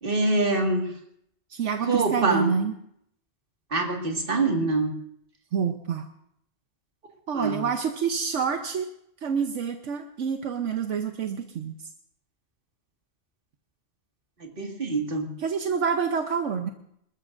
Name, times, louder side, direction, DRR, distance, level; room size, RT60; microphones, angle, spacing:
voice 1, 0.0-0.9 1.8-2.5 3.7-4.9 7.3-7.6 14.4-15.3, right 2 dB, 45° right, 2 dB, 2.1 m, -25 dB
voice 2, 1.5-2.7 5.5-6.0 7.3-8.9 9.2-11.7 15.4-16.7, right 6 dB, 80° right, 5 dB, 1.2 m, -27 dB
27.0 x 13.5 x 2.6 m, 0.72 s
omnidirectional pair, 1.2 m